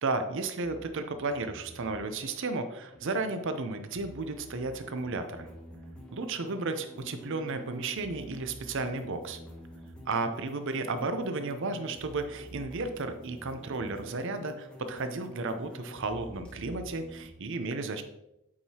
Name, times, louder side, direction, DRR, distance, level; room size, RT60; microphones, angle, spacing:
voice 1, 0.0-5.5 6.1-9.4 10.1-18.0, right 3 dB, 60° right, 8 dB, 0.6 m, -33 dB
sound 1, 0.6-17.3, equal, 5° left, 1.0 m, -48 dB
8.5 x 4.7 x 2.9 m, 0.85 s
head